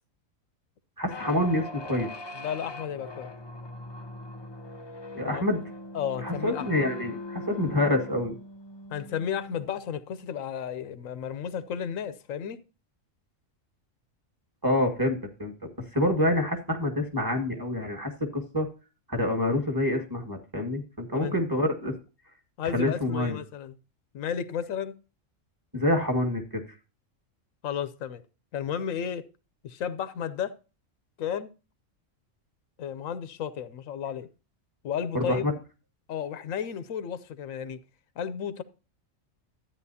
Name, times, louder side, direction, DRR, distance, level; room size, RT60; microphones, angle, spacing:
voice 1, 1.0-2.1 5.1-5.6 6.2-8.3 14.6-15.5 15.9-18.7 19.1-21.9 22.7-23.4 25.7-26.6 35.1-35.5, left 1 dB, 15° right, 1.6 m, -27 dB
sound 1, 1.1-9.8, left 2 dB, 35° left, 0.4 m, -41 dB
voice 2, 2.4-3.3 5.2-5.4 5.9-6.8 8.9-12.6 21.1-21.4 22.6-23.7 24.1-24.9 27.6-28.2 28.5-29.2 29.6-30.5 31.2-31.5 32.8-34.3 34.8-35.4 36.1-37.8 38.2-38.6, left 8 dB, 90° left, 1.1 m, -33 dB
13.0 x 9.0 x 2.7 m
omnidirectional pair, 1.4 m